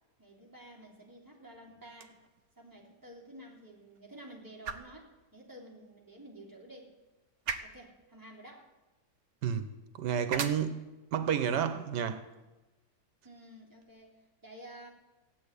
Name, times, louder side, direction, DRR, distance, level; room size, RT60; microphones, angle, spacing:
voice 1, 0.2-2.2 2.6-6.9 7.6-8.7 13.2-14.9, right 1 dB, 10° right, 3.2 m, -51 dB
sound 1, 1.8-13.9, right 6 dB, 50° right, 1.1 m, -46 dB
voice 2, 10.0-12.2, right 8 dB, 90° right, 1.5 m, -31 dB
15.5 x 8.2 x 9.8 m
omnidirectional pair, 1.8 m